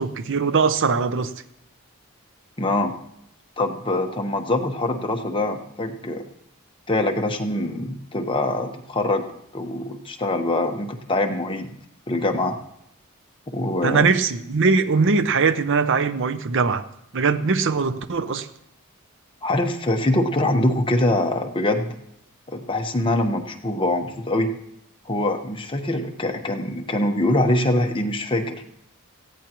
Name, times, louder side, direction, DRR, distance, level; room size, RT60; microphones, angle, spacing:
voice 1, 0.0-1.3 13.8-16.8 17.1-18.5, right 4 dB, 60° right, 0.6 m, -21 dB
voice 2, 2.6-2.9 3.6-6.2 6.9-9.2 9.5-11.7 12.1-12.6 13.5-14.1 19.4-21.9 22.5-24.5 25.0-28.6, left 1 dB, 25° left, 1.1 m, -23 dB
18.5 x 15.0 x 3.0 m
head